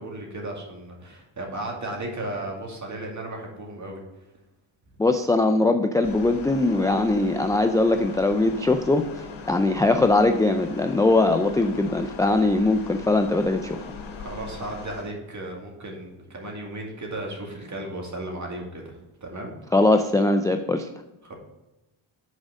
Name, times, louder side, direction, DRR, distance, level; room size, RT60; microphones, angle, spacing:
voice 1, 0.0-4.0 14.2-19.5 21.3-21.4, right 1 dB, 35° right, 0 dB, 2.3 m, -35 dB
voice 2, 5.0-13.8 19.7-20.9, left 2 dB, 10° left, 6 dB, 0.3 m, -21 dB
sound 1, 6.0-15.0, left 4 dB, 90° left, 1.8 m, -40 dB
6.4 x 4.8 x 6.3 m, 1.0 s
cardioid pair, 90°, 49 cm